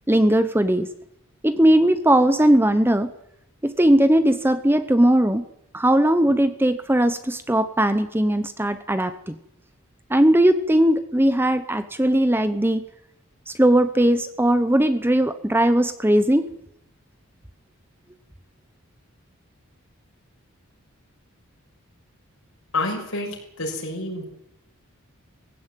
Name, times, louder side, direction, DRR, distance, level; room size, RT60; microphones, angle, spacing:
voice 1, 0.1-0.9 1.4-3.1 3.6-5.4 5.7-9.4 10.1-12.8 13.5-16.5, right 1 dB, 10° right, 10 dB, 0.8 m, -19 dB
voice 2, 22.7-24.2, left 2 dB, 75° left, 0 dB, 6.3 m, -28 dB
19.0 x 15.5 x 9.1 m, 0.78 s
head